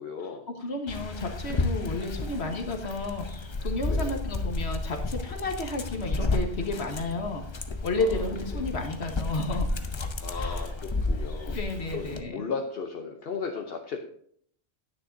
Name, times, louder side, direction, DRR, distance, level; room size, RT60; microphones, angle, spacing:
voice 1, 0.0-0.5 3.8-4.1 8.0-8.6 10.2-11.6 11.9-14.0, left 5 dB, 65° left, 3 dB, 1.0 m, -36 dB
voice 2, 0.6-7.4 7.8-9.7 10.3-10.7 11.5-12.5, left 2 dB, 80° left, 3 dB, 1.6 m, -32 dB
Dog, 0.9-12.2, left 2 dB, 30° left, 0.7 m, -32 dB
10.5 x 9.5 x 2.6 m, 0.64 s
omnidirectional pair, 1.1 m